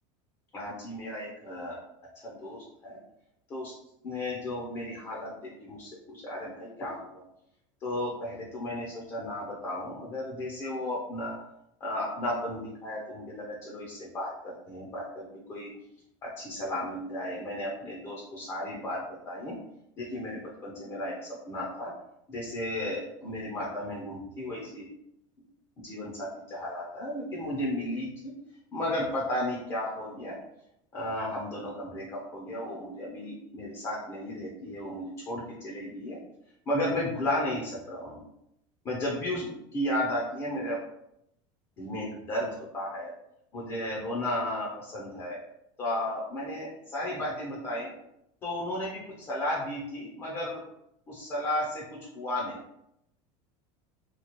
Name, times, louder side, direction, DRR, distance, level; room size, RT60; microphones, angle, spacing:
voice 1, 0.5-1.8 2.2-3.0 3.5-3.7 4.0-7.2 7.8-11.3 11.8-15.7 16.2-19.6 20.0-21.9 22.3-24.9 25.8-28.3 28.7-30.4 30.9-36.2 36.7-38.2 38.8-40.8 41.8-43.1 43.5-45.4 45.8-47.9 48.4-50.6 51.1-52.6, left 1 dB, 20° left, -5 dB, 0.6 m, -34 dB
3.0 x 2.3 x 4.2 m, 0.80 s
supercardioid pair, 175°, 17 cm